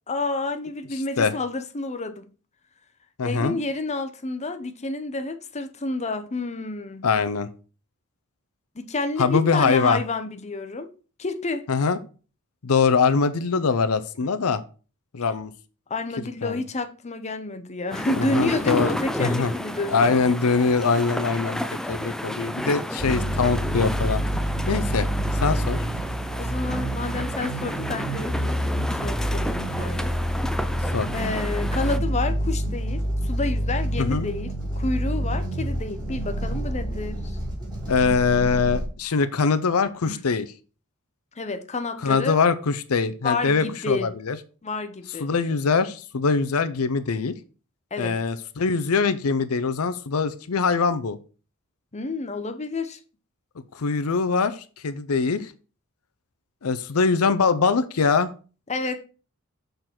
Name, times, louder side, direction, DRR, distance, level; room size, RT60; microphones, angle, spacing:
voice 1, 0.1-2.3 3.2-7.0 8.8-10.9 11.2-11.7 15.9-20.1 26.4-28.6 28.9-30.1 31.1-37.3 40.1-40.2 41.4-42.4 43.2-44.1 44.6-45.3 47.9-48.2 51.9-53.0 58.7-59.0, left 3 dB, 30° left, 0.8 m, -29 dB
voice 2, 3.2-3.6 7.0-7.5 9.2-10.0 11.7-12.0 12.6-14.6 15.1-15.5 16.4-16.6 18.2-19.5 19.9-21.6 21.9-24.2 24.7-25.1 25.3-25.8 30.9-31.1 34.0-34.3 37.9-40.5 42.0-44.4 45.2-47.3 48.0-51.2 53.7-55.5 56.6-58.3, left 5 dB, 85° left, 0.6 m, -23 dB
sound 1, 17.9-32.0, equal, 5° left, 0.4 m, -32 dB
sound 2, 23.0-38.9, equal, 20° right, 4.0 m, -27 dB
6.7 x 4.0 x 6.0 m
head